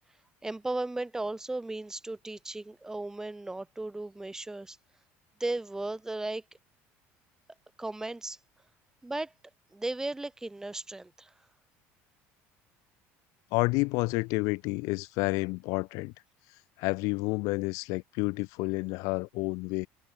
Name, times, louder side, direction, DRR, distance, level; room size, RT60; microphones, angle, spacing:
voice 1, 0.4-4.8 5.4-6.4 7.8-8.4 9.0-9.3 9.7-11.3, right 2 dB, 10° right, 2.7 m, -35 dB
voice 2, 13.5-16.1 16.8-19.9, left 26 dB, 75° left, 0.6 m, -30 dB
cardioid pair, 125°, 6 cm